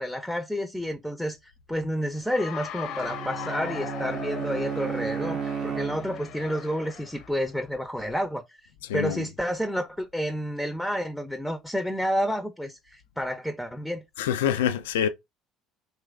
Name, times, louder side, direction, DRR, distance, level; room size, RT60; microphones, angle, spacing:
voice 1, 0.0-8.4 8.9-14.0, equal, ahead, 0.5 m, -30 dB
Cheering / Applause, 2.2-7.4, left 9 dB, 65° left, 0.7 m, -39 dB
Bowed string instrument, 2.9-6.5, right 7 dB, 45° right, 0.6 m, -33 dB
voice 2, 8.8-9.3 14.2-15.1, left 9 dB, 85° left, 0.3 m, -26 dB
3.0 x 2.4 x 3.4 m
hypercardioid pair, 70°, 0 cm